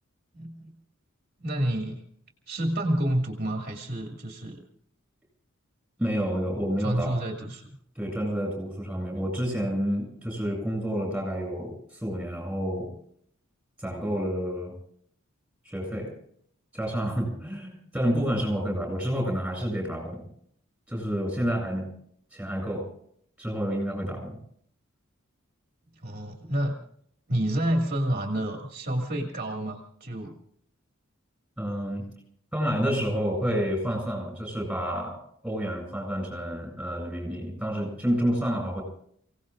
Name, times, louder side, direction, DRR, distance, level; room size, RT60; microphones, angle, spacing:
voice 1, 0.3-0.8 1.4-2.0 2.5-4.6 6.8-7.7 25.9-26.8 27.3-30.4, right 1 dB, 45° right, 1 dB, 2.2 m, -29 dB
voice 2, 6.0-7.1 7.9-11.7 12.0-12.9 13.8-14.7 15.6-16.1 16.7-20.3 20.9-21.9 22.3-22.9 23.4-24.4 31.6-32.0 32.5-35.2 35.4-38.8, equal, 5° right, 1 dB, 7.7 m, -29 dB
30.0 x 18.0 x 2.6 m, 0.64 s
head